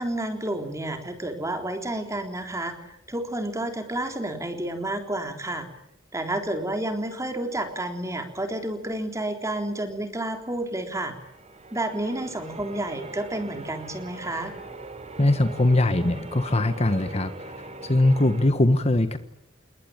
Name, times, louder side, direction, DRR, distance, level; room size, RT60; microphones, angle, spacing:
voice 1, 0.0-5.7 6.1-11.1 11.7-14.5, right 1 dB, 15° right, 5 dB, 3.7 m, -30 dB
Church bell, 11.2-18.5, right 2 dB, 35° right, 3.7 m, -41 dB
voice 2, 15.2-17.3 17.8-19.2, left 1 dB, 30° left, 10 dB, 1.3 m, -21 dB
28.5 x 21.0 x 9.0 m, 0.77 s
head